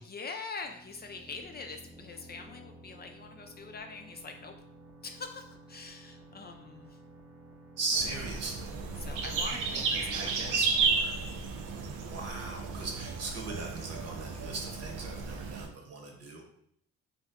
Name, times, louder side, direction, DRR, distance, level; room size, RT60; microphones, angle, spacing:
voice 1, 0.0-4.5 5.0-7.0 9.0-11.2, left 4 dB, 35° left, 5 dB, 0.4 m, -44 dB
sound 1, 0.6-12.1, right 1 dB, 5° right, 0.6 m, -54 dB
voice 2, 7.8-8.7 9.4-10.7 11.9-16.4, right 3 dB, 55° right, 2 dB, 1.0 m, -38 dB
sound 2, 7.9-15.7, right 4 dB, 85° right, 0.6 m, -33 dB
3.4 x 2.7 x 3.5 m, 0.70 s
cardioid pair, 90°, 30 cm